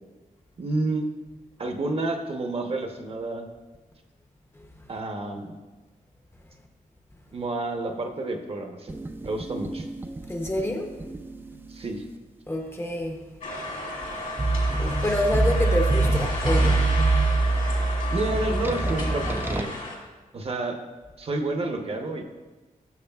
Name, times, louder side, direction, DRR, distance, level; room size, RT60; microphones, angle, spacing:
voice 1, 0.6-1.1 1.6-3.5 4.9-5.6 7.3-9.0 9.2-9.9 11.7-12.0 18.1-19.8 20.3-20.8 21.2-22.2, right 2 dB, 45° right, 4 dB, 0.8 m, -29 dB
sound 1, 8.9-11.8 14.4-19.6, right 3 dB, 15° right, 0.3 m, -25 dB
voice 2, 10.3-10.9 12.5-13.2 14.8-16.8, left 1 dB, 15° left, 3 dB, 0.7 m, -27 dB
sound 2, 13.4-20.0, left 1 dB, 65° left, 1.9 m, -33 dB
14.0 x 6.2 x 2.3 m, 1.2 s
wide cardioid pair, 170°, 14 cm